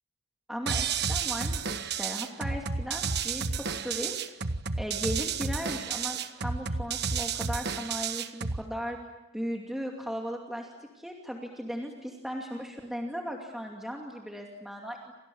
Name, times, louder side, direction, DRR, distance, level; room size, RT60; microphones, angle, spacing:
voice 1, 0.5-4.2 4.8-9.0 9.3-15.1, equal, ahead, 0 dB, 2.6 m, -37 dB
sound 1, 0.7-8.7, right 5 dB, 50° right, 1.4 m, -31 dB
30.0 x 27.0 x 7.2 m, 1.1 s
head